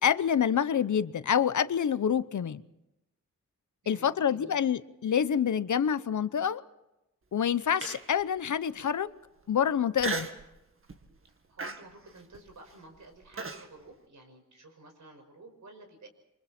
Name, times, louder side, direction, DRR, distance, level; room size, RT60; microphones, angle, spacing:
voice 1, 0.0-2.6 3.9-6.6 7.3-9.1 9.5-10.3, left 8 dB, 65° left, 0.9 m, -27 dB
voice 2, 3.8-4.6 11.5-16.1, right 2 dB, 65° right, 5.8 m, -52 dB
Human voice, 7.8-8.2 8.8-8.9 10.0-10.5 10.9-11.2 11.6-13.7, right 3 dB, 40° right, 2.0 m, -36 dB
28.5 x 24.5 x 4.4 m
wide cardioid pair, 140°, 32 cm